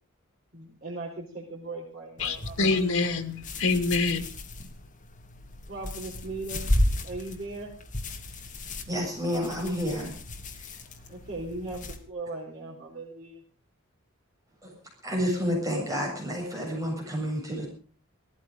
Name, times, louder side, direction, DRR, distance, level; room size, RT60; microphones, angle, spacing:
voice 1, 0.5-2.6 5.7-6.7 7.0-7.7 11.1-13.4, right 2 dB, 45° right, -4 dB, 4.7 m, -38 dB
voice 2, 2.2-4.2, left 3 dB, 90° left, 7 dB, 2.2 m, -26 dB
sound 1, 2.2-12.0, left 1 dB, 35° left, 2.4 m, -34 dB
voice 3, 8.9-10.1 10.5-10.7 14.6-14.7 15.0-17.7, equal, 15° right, -1 dB, 7.4 m, -30 dB
18.0 x 14.5 x 5.3 m, 0.40 s
head